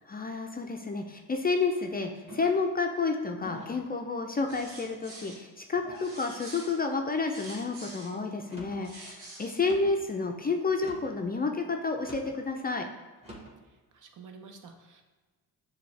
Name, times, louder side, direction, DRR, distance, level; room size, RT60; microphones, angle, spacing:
voice 1, 0.1-12.9, left 4 dB, 25° left, 3 dB, 0.4 m, -30 dB
sound 1, 2.3-2.7 3.4-3.9 4.5-5.0 5.7-6.2 6.8-7.2 8.4-8.9 9.6-10.0 10.7-11.2 12.0-12.4 13.2-13.6, equal, 15° right, 1.4 m, -47 dB
sound 2, 4.4-5.4 5.9-8.1 8.6-9.6, right 2 dB, 80° right, 1.4 m, -46 dB
voice 2, 13.7-15.0, right 4 dB, 50° right, 4 dB, 0.7 m, -50 dB
6.7 x 2.3 x 3.3 m, 1.3 s
cardioid pair, 70°, 38 cm